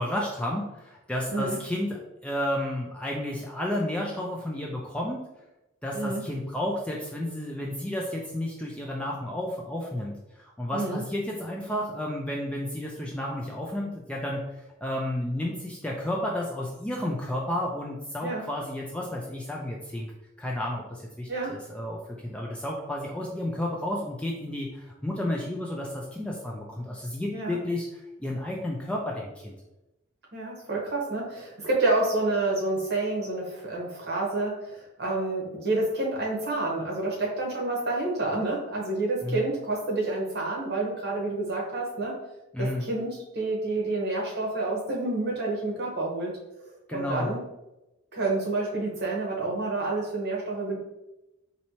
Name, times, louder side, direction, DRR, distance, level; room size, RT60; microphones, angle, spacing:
voice 1, 0.0-5.2 5.8-14.4 14.8-20.1 20.4-27.8 28.2-29.6 39.2-39.4 42.5-42.9 46.9-47.4, left 1 dB, 5° left, -2 dB, 0.3 m, -32 dB
voice 2, 10.7-11.0 18.2-18.5 21.3-21.6 27.3-27.6 30.3-42.2 42.6-47.4 48.1-50.8, right 2 dB, 50° right, -2 dB, 1.0 m, -29 dB
4.2 x 2.7 x 2.9 m, 0.96 s
head